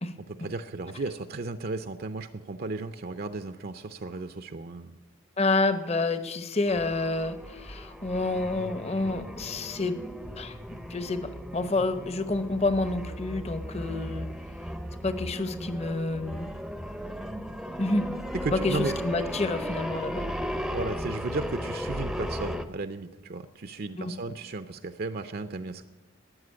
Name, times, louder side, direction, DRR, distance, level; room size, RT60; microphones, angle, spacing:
voice 1, 0.3-5.0 18.3-18.9 20.7-25.8, right 3 dB, 45° right, 10 dB, 0.5 m, -34 dB
voice 2, 5.4-10.0 10.3-10.6 10.9-14.3 15.0-16.5 17.8-18.0 18.5-20.3 24.0-24.1, left 2 dB, 30° left, 11 dB, 0.8 m, -28 dB
sound 1, 6.7-22.7, equal, ahead, 0.6 m, -36 dB
12.5 x 9.0 x 9.7 m, 1.2 s
head